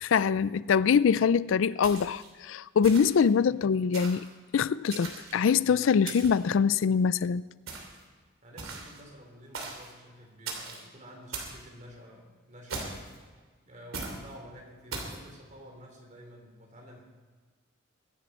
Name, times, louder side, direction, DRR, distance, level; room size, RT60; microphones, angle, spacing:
voice 1, 0.0-4.3 4.5-7.4, left 6 dB, 70° left, 0.4 m, -24 dB
sound 1, 1.8-2.3 2.8-3.3 3.9-4.3 4.9-5.5 6.1-6.5 7.7-8.0 8.6-9.0 9.5-9.9 10.5-10.8 11.3-11.6 12.7-13.2 13.9-14.2 14.9-15.2, right 4 dB, 90° right, 2.9 m, -39 dB
voice 2, 8.4-13.0 13.6-17.0, equal, 40° right, 3.8 m, -50 dB
23.0 x 10.5 x 4.4 m
head